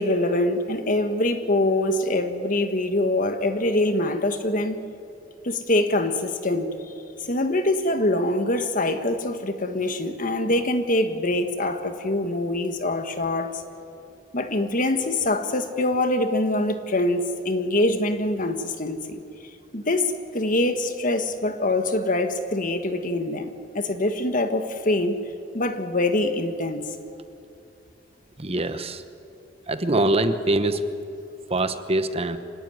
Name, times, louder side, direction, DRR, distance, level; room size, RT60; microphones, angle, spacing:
voice 1, 0.0-4.8 5.4-6.7 7.3-13.6 14.3-19.2 19.7-23.5 23.7-25.2 25.5-26.8, left 1 dB, 45° left, 7 dB, 1.6 m, -24 dB
voice 2, 28.4-29.0 29.7-30.8 31.5-32.4, right 2 dB, 30° right, 10 dB, 1.0 m, -23 dB
25.5 x 17.5 x 9.7 m, 2.6 s
head